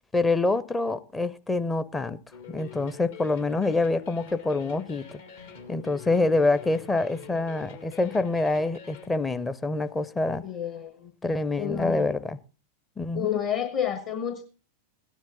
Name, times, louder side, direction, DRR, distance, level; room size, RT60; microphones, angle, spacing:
voice 1, 0.1-2.2 2.5-5.2 5.7-10.4 11.2-12.4 13.0-13.4, left 2 dB, 15° left, 0.6 m, -26 dB
sound 1, 2.3-9.1, left 7 dB, 60° left, 2.1 m, -45 dB
voice 2, 10.4-11.1 11.6-12.1 13.1-14.4, left 9 dB, 40° left, 1.4 m, -29 dB
16.5 x 10.0 x 3.8 m
figure-of-eight pair, 90°, 0 cm